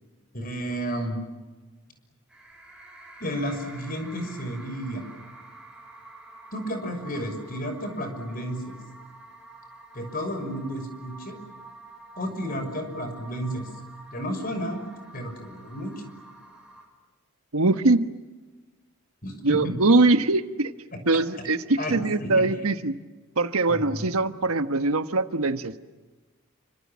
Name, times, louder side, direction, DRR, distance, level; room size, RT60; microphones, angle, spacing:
voice 1, 0.3-1.2 3.2-5.0 6.5-8.7 9.9-11.4 12.2-13.7 14.1-14.8 15.1-15.9 19.2-19.9 21.8-22.5 23.7-24.1, equal, 40° left, 6 dB, 6.4 m, -32 dB
sound 1, 2.3-16.8, right 2 dB, 5° right, 5.7 m, -48 dB
voice 2, 17.5-18.1 19.4-20.7 21.0-23.0 23.4-25.8, right 3 dB, 80° right, 10 dB, 1.4 m, -22 dB
29.5 x 26.0 x 7.4 m, 1.2 s
head